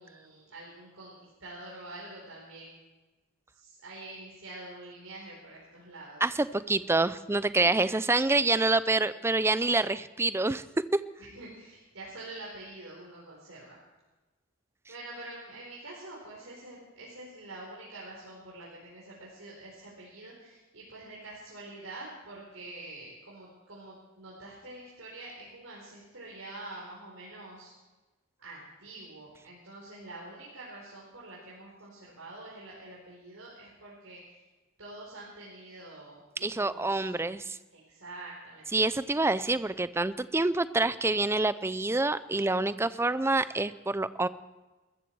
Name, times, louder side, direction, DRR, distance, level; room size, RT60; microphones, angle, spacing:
voice 1, 0.0-2.8 3.5-6.2 11.2-13.8 14.9-27.7 28.4-34.4 34.8-37.1 37.7-38.7, right 2 dB, 80° right, -5 dB, 4.5 m, -46 dB
voice 2, 6.2-10.6 36.4-37.6 38.7-44.3, right 2 dB, 10° right, 15 dB, 0.5 m, -27 dB
21.5 x 14.0 x 4.7 m, 1.1 s
head